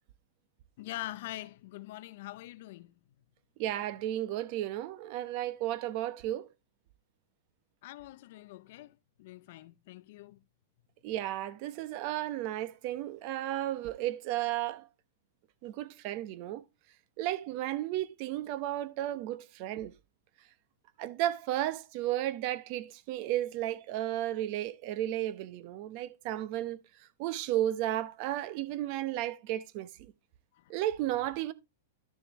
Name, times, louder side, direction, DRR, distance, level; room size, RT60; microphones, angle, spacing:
voice 1, 0.8-2.9 7.8-10.4 30.5-30.7, left 16 dB, 55° left, 0.5 m, -44 dB
voice 2, 3.6-6.5 11.0-14.9 15.6-16.6 17.2-19.9 21.0-26.8 27.2-29.9 30.7-31.5, right 13 dB, 40° right, 0.9 m, -33 dB
12.0 x 6.7 x 3.1 m
supercardioid pair, 160°, 0 cm